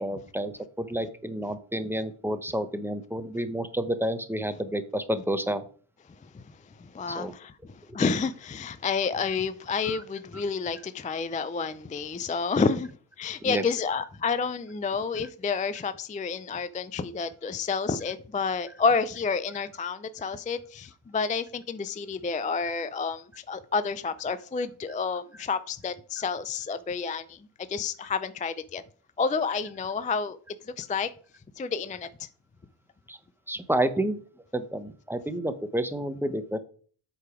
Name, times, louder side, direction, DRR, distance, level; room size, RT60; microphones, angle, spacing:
voice 1, 0.0-5.6 7.1-7.3 7.9-8.0 9.8-10.0 13.4-13.6 33.1-33.2 33.5-34.2 34.5-36.6, right 1 dB, 5° right, 0.7 m, -30 dB
voice 2, 6.8-7.5 7.9-12.9 13.2-27.4 27.7-28.8 29.2-30.4 30.8-31.1 31.6-32.3, left 5 dB, 20° left, 0.3 m, -29 dB
8.1 x 4.8 x 4.8 m
wide cardioid pair, 115°, 50 cm